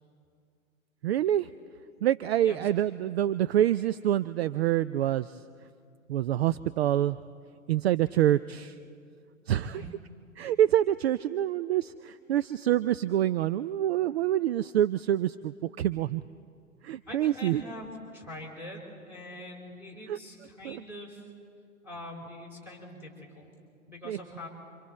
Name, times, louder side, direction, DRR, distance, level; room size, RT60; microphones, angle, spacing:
voice 1, 1.0-1.5 2.0-5.4 6.1-7.2 7.7-8.8 9.5-9.9 10.4-16.2 16.8-17.6 20.1-20.2 20.6-20.8 24.0-24.2, right 12 dB, 50° right, 15 dB, 0.5 m, -26 dB
voice 2, 9.6-9.9 17.1-21.2 21.8-23.5 23.9-24.5, left 1 dB, 5° right, 0 dB, 4.4 m, -43 dB
28.0 x 25.5 x 4.3 m, 2.4 s
figure-of-eight pair, 115°, 41 cm